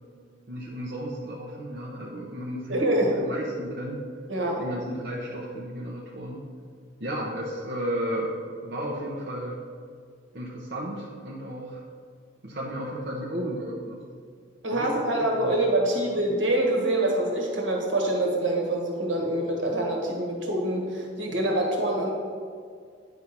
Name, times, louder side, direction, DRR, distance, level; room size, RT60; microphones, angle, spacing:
voice 1, 0.5-4.0 4.6-6.4 7.0-9.6 10.3-11.8 12.4-14.0 14.7-15.5 16.1-16.2, equal, 55° right, -4 dB, 0.9 m, -34 dB
voice 2, 2.7-3.2 4.3-4.6 14.6-22.1, right 1 dB, 80° right, -1 dB, 1.6 m, -25 dB
9.5 x 3.7 x 5.8 m, 2.1 s
head